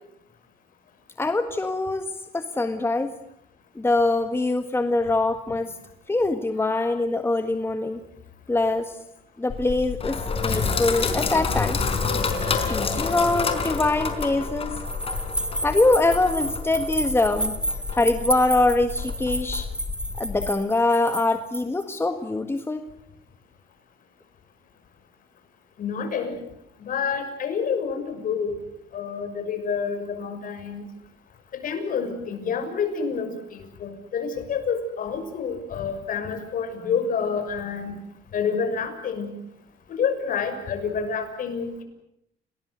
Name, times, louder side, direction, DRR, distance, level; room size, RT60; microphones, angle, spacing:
voice 1, 1.2-3.2 3.8-5.7 6.1-8.0 8.5-9.0 9.4-11.8 12.7-14.8 15.6-17.6 17.9-19.7 20.2-22.8, left 2 dB, 15° left, 7 dB, 1.7 m, -23 dB
Sink (filling or washing), 9.5-20.5, left 4 dB, 35° left, 4.4 m, -28 dB
sound 1, 14.9-21.8, right 1 dB, 5° right, 2.6 m, -31 dB
voice 2, 25.8-26.3 26.8-28.5 28.9-30.8 31.5-37.9 38.3-39.3 39.9-41.8, left 6 dB, 55° left, 7 dB, 6.5 m, -28 dB
29.5 x 19.5 x 8.1 m, 0.75 s
cardioid pair, 110°, 17 cm